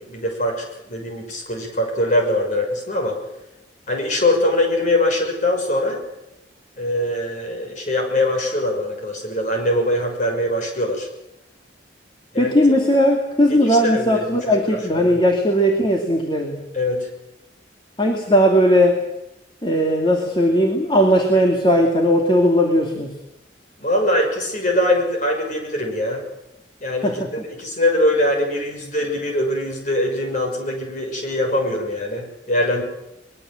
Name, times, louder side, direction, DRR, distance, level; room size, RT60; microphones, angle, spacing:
voice 1, 0.0-3.2 3.9-6.0 6.8-11.1 12.3-12.6 13.5-15.2 16.7-17.1 23.8-26.2 26.8-27.2 27.6-32.8, left 1 dB, 40° left, 3 dB, 6.2 m, -22 dB
voice 2, 12.4-16.6 18.0-19.0 19.6-23.1 27.0-27.2, equal, 25° left, 1 dB, 2.5 m, -17 dB
23.5 x 21.5 x 7.9 m, 0.89 s
head